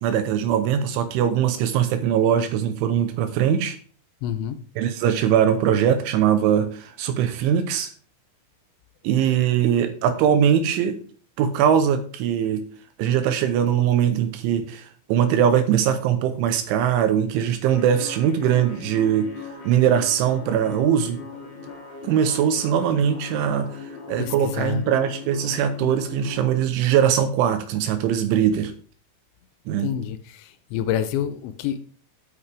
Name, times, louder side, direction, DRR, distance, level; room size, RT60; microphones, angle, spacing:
voice 1, 0.0-3.8 4.8-7.9 9.0-11.0 11.4-12.6 13.0-19.3 19.6-21.2 22.0-28.7 29.7-29.9, right 9 dB, 80° right, 9 dB, 3.0 m, -21 dB
voice 2, 4.2-4.6 24.2-24.8 29.8-31.8, left 10 dB, 80° left, 11 dB, 2.6 m, -28 dB
sound 1, 17.7-26.5, left 5 dB, 60° left, 1.1 m, -39 dB
12.0 x 8.8 x 3.5 m, 0.42 s
omnidirectional pair, 5.9 m